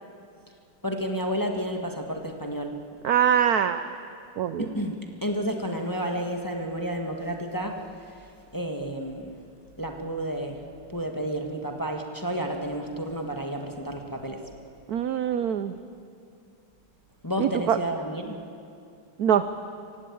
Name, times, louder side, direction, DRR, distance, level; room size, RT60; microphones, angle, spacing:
voice 1, 0.8-2.8 4.6-4.9 5.2-7.8 8.5-9.4 9.8-10.6 10.9-14.4 17.2-18.4, equal, 10° left, 3 dB, 1.3 m, -31 dB
voice 2, 3.0-3.8 4.4-4.7 14.9-15.7 17.4-17.8 19.2-19.5, right 9 dB, 75° right, 11 dB, 0.9 m, -23 dB
27.0 x 16.5 x 8.5 m, 2.4 s
omnidirectional pair, 2.4 m